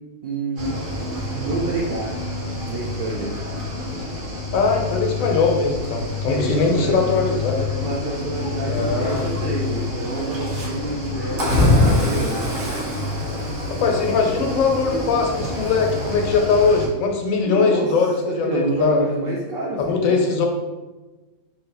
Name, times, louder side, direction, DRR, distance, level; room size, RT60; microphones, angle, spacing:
voice 1, 0.2-0.7 1.1-2.2 2.7-3.3 6.3-7.1 7.8-12.4 17.4-20.3, right 2 dB, 75° right, -3 dB, 0.5 m, -28 dB
Cricket / Waves surf, 0.6-16.9, left 2 dB, 45° right, 0.8 m, -26 dB
voice 2, 4.5-7.7 8.7-9.2 13.8-19.1 19.8-20.5, left 4 dB, 70° left, 2 dB, 0.9 m, -20 dB
3.0 x 2.6 x 3.3 m, 1.2 s
omnidirectional pair, 1.5 m